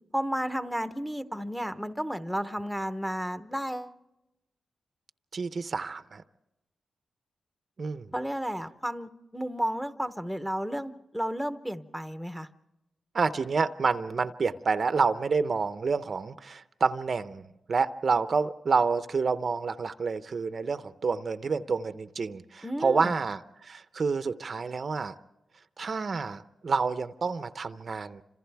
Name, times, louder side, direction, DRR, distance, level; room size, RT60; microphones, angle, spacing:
voice 1, 0.1-3.9 8.1-12.5 22.6-23.1, equal, ahead, 9 dB, 0.9 m, -32 dB
voice 2, 5.3-6.2 7.8-8.1 13.1-25.1 25.8-28.2, right 5 dB, 45° right, 11 dB, 0.7 m, -28 dB
30.0 x 26.5 x 3.4 m, 0.94 s
wide cardioid pair, 130°, 0 cm